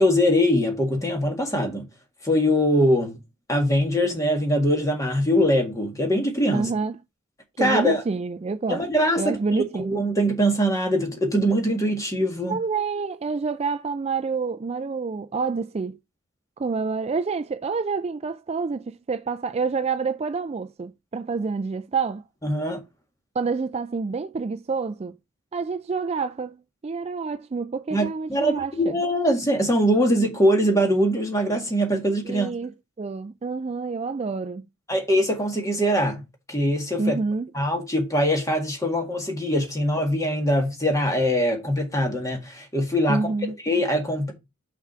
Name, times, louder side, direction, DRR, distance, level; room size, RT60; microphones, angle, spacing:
voice 1, 0.0-1.9 2.2-3.2 3.5-6.7 7.6-8.0 8.7-12.6 22.4-22.8 27.9-32.5 34.9-37.2 37.5-43.3 43.6-44.3, equal, 15° left, 1.8 m, -22 dB
voice 2, 6.5-7.0 7.6-8.8 9.2-9.9 12.5-16.0 16.6-22.2 23.4-25.2 25.5-26.6 26.8-29.0 32.2-34.6 37.0-37.5 43.1-43.6, right 4 dB, 30° right, 0.3 m, -28 dB
5.9 x 4.6 x 5.6 m
head